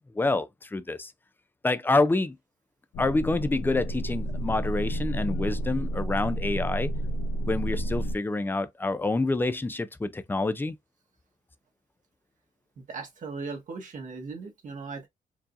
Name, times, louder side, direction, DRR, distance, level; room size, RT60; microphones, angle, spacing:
voice 1, 0.1-1.1 1.6-2.4 3.0-6.9 7.5-10.8, left 2 dB, 15° left, 0.5 m, -27 dB
sound 1, 2.9-8.1, right 1 dB, 85° left, 0.8 m, -31 dB
voice 2, 12.9-15.1, right 4 dB, 55° right, 1.4 m, -38 dB
4.7 x 2.7 x 2.6 m
cardioid pair, 95°, 15 cm